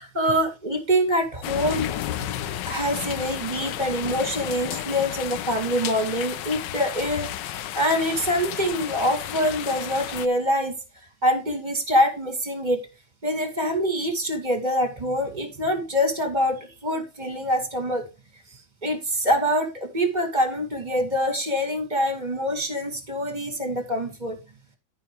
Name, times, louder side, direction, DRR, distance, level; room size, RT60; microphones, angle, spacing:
voice 1, 0.0-2.3 2.7-10.7 11.2-12.8 13.2-18.0 18.8-24.4, equal, 20° right, 6 dB, 2.4 m, -25 dB
sound 1, 1.4-10.3, left 12 dB, 70° left, 1.2 m, -32 dB
13.5 x 5.8 x 3.4 m, 0.28 s
omnidirectional pair, 2.2 m